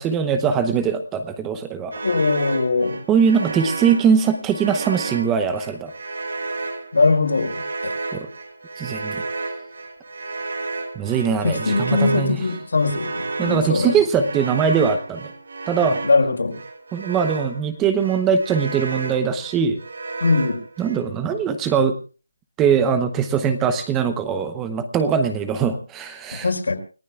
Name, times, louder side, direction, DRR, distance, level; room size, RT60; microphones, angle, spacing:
voice 1, 0.0-1.9 3.1-5.9 8.1-8.3 8.8-9.2 11.0-12.4 13.4-15.3 15.7-16.0 16.9-19.8 20.8-22.0 22.6-26.5, right 6 dB, 10° right, 10 dB, 0.8 m, -21 dB
sound 1, 1.9-17.7 18.0-21.1, right 3 dB, 70° right, 3.3 m, -32 dB
voice 2, 2.0-3.0 6.9-7.9 11.4-13.9 15.8-16.6 20.2-20.6 26.4-26.8, left 3 dB, 75° left, 4 dB, 4.9 m, -21 dB
29.0 x 15.5 x 2.3 m, 0.36 s
hypercardioid pair, 170°, 0 cm